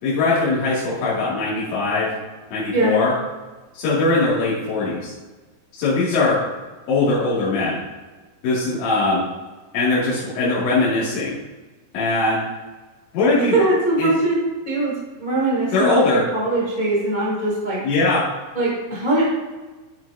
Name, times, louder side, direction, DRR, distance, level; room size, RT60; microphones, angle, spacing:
voice 1, 0.0-2.1 2.5-3.1 3.7-5.1 5.7-6.4 6.9-7.8 8.4-9.2 9.7-11.4 11.9-12.4 13.1-13.6 14.0-14.1 15.7-16.2 17.8-18.2, left 3 dB, 80° left, -11 dB, 4.9 m, -20 dB
voice 2, 2.7-3.0 13.5-14.4 14.6-14.9 15.2-16.0 16.3-17.8 18.5-19.2, right 2 dB, 10° left, -7 dB, 2.7 m, -21 dB
12.5 x 7.8 x 2.8 m, 1.3 s
omnidirectional pair, 5.1 m